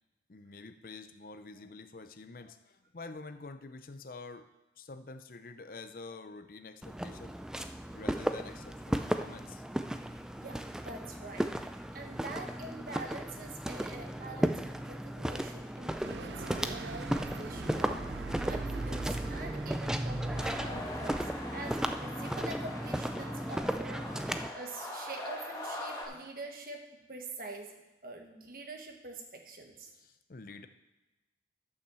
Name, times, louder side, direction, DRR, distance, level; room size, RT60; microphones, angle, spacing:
voice 1, 0.3-4.5 4.8-7.3 7.9-9.7 29.9-30.7, left 3 dB, 50° left, 10 dB, 0.6 m, -47 dB
Walk footsteps, 6.8-24.5, equal, 5° right, 0.3 m, -35 dB
voice 2, 10.4-21.2 21.5-24.0 24.5-26.8 27.1-27.7 28.0-29.9, right 3 dB, 50° right, 3 dB, 1.3 m, -45 dB
sound 1, 16.0-21.1, right 4 dB, 75° right, 0.5 m, -42 dB
sound 2, 20.3-26.0, left 1 dB, 20° left, 1.6 m, -42 dB
9.3 x 5.8 x 6.8 m, 1.0 s
head